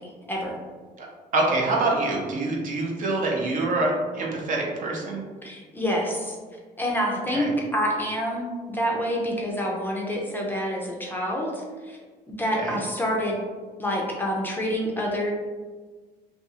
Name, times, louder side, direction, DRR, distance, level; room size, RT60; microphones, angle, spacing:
voice 1, 1.3-5.2 7.3-7.5 12.6-12.8, right 2 dB, 50° right, -1 dB, 0.6 m, -25 dB
voice 2, 5.4-6.4 6.8-12.0 12.4-13.4 13.8-15.3, equal, 10° left, -2 dB, 0.5 m, -27 dB
2.6 x 2.4 x 2.7 m, 1.4 s
cardioid pair, 110°, 17 cm